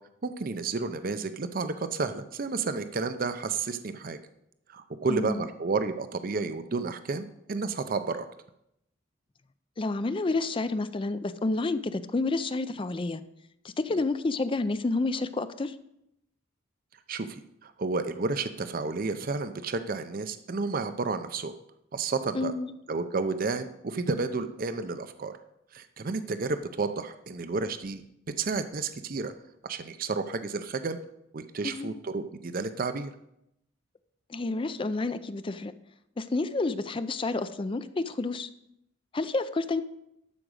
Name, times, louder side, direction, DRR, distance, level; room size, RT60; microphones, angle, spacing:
voice 1, 0.2-4.2 4.7-8.3 17.1-17.3 17.6-21.5 21.9-22.5 22.9-25.3 25.7-28.0 28.4-29.3 29.6-31.0 31.3-33.1, right 4 dB, 45° right, 10 dB, 0.6 m, -31 dB
voice 2, 5.1-5.5 9.8-13.2 13.6-15.7 22.3-22.7 31.6-32.0 34.3-35.7 36.2-38.5 39.1-39.8, left 3 dB, 25° left, 13 dB, 0.4 m, -29 dB
12.0 x 5.0 x 6.4 m, 0.80 s
head